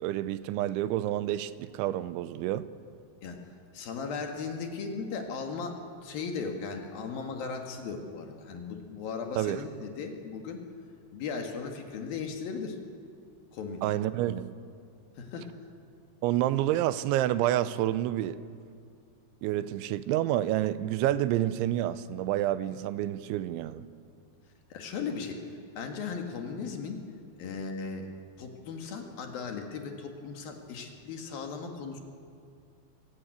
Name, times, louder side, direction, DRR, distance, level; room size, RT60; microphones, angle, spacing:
voice 1, 0.0-2.7 9.4-9.6 13.8-14.5 16.2-18.4 19.4-23.8, right 13 dB, 90° right, 14 dB, 3.1 m, -28 dB
voice 2, 3.7-10.6 11.1-12.8 13.5-13.8 15.2-15.5 24.7-27.0 27.3-28.1 28.4-32.0, left 5 dB, 60° left, 3 dB, 3.1 m, -37 dB
24.5 x 15.5 x 9.5 m, 2.2 s
omnidirectional pair, 5.3 m